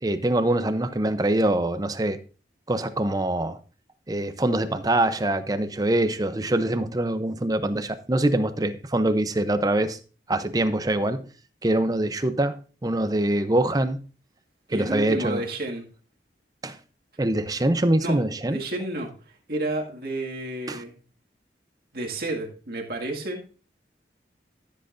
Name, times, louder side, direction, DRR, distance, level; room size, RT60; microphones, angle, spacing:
voice 1, 0.0-2.2 2.7-3.6 4.1-10.0 10.3-11.2 11.6-14.0 14.7-15.4 16.6-16.8 17.2-18.6 20.7-20.8, right 1 dB, 20° right, 0.6 m, -24 dB
voice 2, 14.7-15.8 18.0-20.9 21.9-23.4, right 1 dB, 55° right, 2.0 m, -31 dB
13.5 x 7.9 x 2.6 m
head